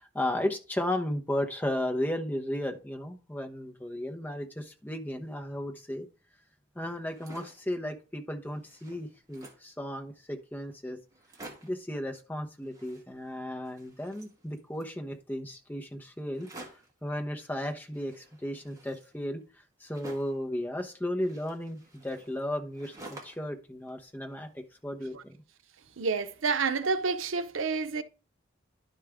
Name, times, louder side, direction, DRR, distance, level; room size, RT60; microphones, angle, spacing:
voice 1, 0.0-6.1 6.7-11.0 11.6-16.5 17.0-19.4 19.8-25.4, left 1 dB, 10° left, 0.9 m, -34 dB
sound 1, 7.0-7.7 8.2-8.3 8.5-9.7 10.4-10.5 10.7-10.8 11.1-11.9 12.6-13.4 13.6-14.9 16.3-17.0 17.9-20.5 21.2-23.5 23.9-24.8, right 2 dB, 15° right, 1.5 m, -50 dB
voice 2, 26.0-28.0, right 4 dB, 90° right, 0.7 m, -29 dB
11.0 x 4.9 x 3.5 m
head